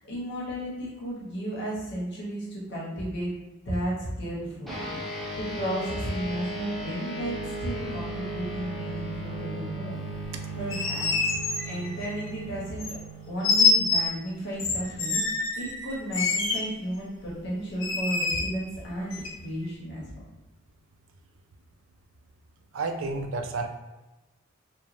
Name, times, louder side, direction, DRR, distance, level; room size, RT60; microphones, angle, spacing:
voice 1, 0.0-3.4 3.6-10.0 10.6-11.4 11.6-13.0 13.3-20.1, right 1 dB, 60° left, -5 dB, 0.9 m, -34 dB
sound 1, 4.7-14.4, right 1 dB, ahead, 0.5 m, -36 dB
sound 2, 10.5-12.3 12.8-12.9 13.4-14.1 14.6-16.6 17.8-18.5 19.1-19.3, left 4 dB, 80° left, 0.6 m, -26 dB
voice 2, 22.7-23.7, right 3 dB, 80° right, 4 dB, 0.4 m, -30 dB
3.0 x 2.1 x 2.5 m, 1.1 s
head